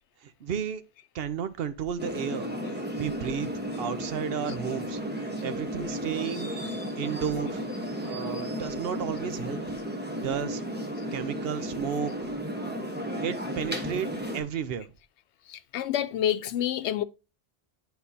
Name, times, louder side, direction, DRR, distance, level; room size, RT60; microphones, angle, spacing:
voice 1, 0.2-0.8 1.1-6.6 7.0-7.6 8.0-9.7 10.1-10.6 11.1-12.3 13.2-14.9, right 8 dB, 65° right, 0.9 m, -33 dB
sound 1, 2.0-14.4, equal, 10° right, 1.0 m, -34 dB
voice 2, 15.5-17.0, left 11 dB, 90° left, 0.9 m, -28 dB
9.7 x 4.5 x 2.7 m
omnidirectional pair, 1.1 m